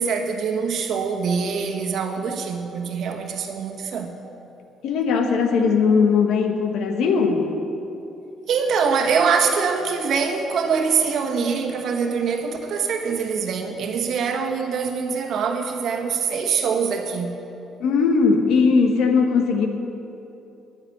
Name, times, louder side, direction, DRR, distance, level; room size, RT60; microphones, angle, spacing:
voice 1, 0.0-4.1 8.5-17.4, right 5 dB, 60° right, 4 dB, 1.4 m, -24 dB
voice 2, 4.8-7.5 17.8-19.7, left 5 dB, 75° left, 4 dB, 1.5 m, -19 dB
9.9 x 8.7 x 10.0 m, 2.9 s
cardioid pair, 140°, 0 cm